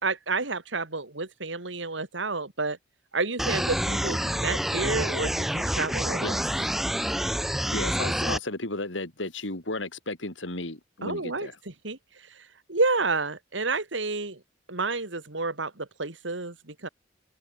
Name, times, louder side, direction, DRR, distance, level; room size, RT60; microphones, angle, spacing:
voice 1, 0.0-2.8 3.1-6.3 11.0-12.0 12.3-14.4 14.7-16.9, right 3 dB, 85° right, 2.9 m, -30 dB
sound 1, 3.4-8.4, equal, ahead, 1.1 m, -28 dB
voice 2, 7.7-11.6, left 2 dB, 90° left, 4.1 m, -34 dB
head